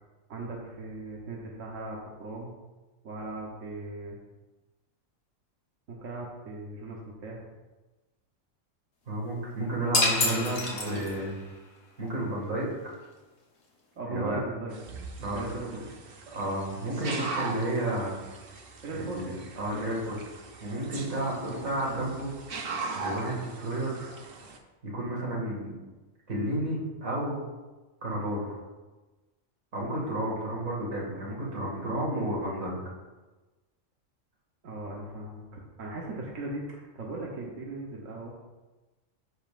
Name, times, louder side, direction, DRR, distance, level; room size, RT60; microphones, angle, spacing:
voice 1, 0.3-2.5 3.0-4.2 5.9-7.4 10.0-11.3 13.9-14.7 15.2-15.8 18.8-19.4 21.1-21.6 34.6-38.3, right 2 dB, 70° right, -3 dB, 1.4 m, -38 dB
voice 2, 9.1-11.4 12.0-13.0 14.1-14.5 15.2-15.9 16.3-18.4 19.0-20.2 20.6-22.3 22.9-24.1 24.8-25.8 26.3-27.4 28.0-28.6 29.7-32.8, right 1 dB, 90° right, -3 dB, 2.5 m, -32 dB
sound 1, 9.9-11.4, left 3 dB, 55° left, 1.4 m, -27 dB
sound 2, 14.7-24.6, right 3 dB, 50° right, 0.9 m, -40 dB
13.0 x 5.5 x 2.5 m, 1.2 s
omnidirectional pair, 1.4 m